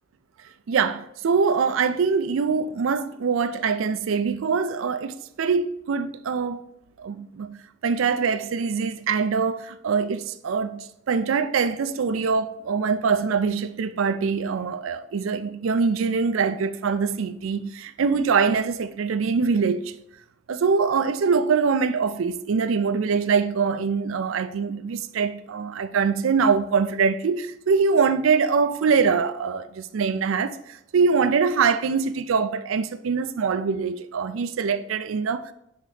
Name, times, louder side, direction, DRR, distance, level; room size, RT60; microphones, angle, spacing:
voice 1, 0.7-6.6 7.0-20.0 20.5-35.5, right 5 dB, 80° right, 0.4 m, -23 dB
5.8 x 4.0 x 4.8 m
head